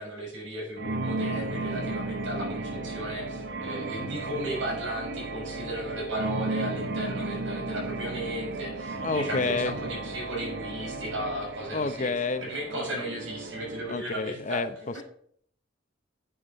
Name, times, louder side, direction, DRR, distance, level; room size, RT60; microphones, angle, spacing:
voice 1, 0.0-12.1 12.4-15.0, right 1 dB, 85° right, -1 dB, 6.1 m, -35 dB
sound 1, 0.8-14.0, right 2 dB, 60° right, 1.1 m, -34 dB
voice 2, 9.0-9.8 11.7-12.5 12.7-13.1 13.9-14.7, left 3 dB, 40° left, 12 dB, 0.8 m, -29 dB
10.0 x 8.7 x 5.5 m, 0.62 s
head